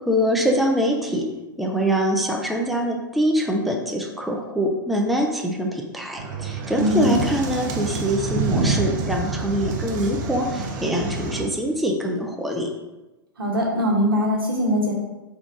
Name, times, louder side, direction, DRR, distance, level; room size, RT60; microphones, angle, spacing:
voice 1, 0.1-1.3 1.6-12.7, equal, ahead, 0 dB, 0.4 m, -24 dB
sound 1, 6.2-11.4, right 4 dB, 55° right, 0.6 m, -27 dB
voice 2, 6.8-7.1 13.4-14.9, equal, 85° right, -2 dB, 1.1 m, -21 dB
3.8 x 2.3 x 3.5 m, 1.1 s
hypercardioid pair, 110°, 12 cm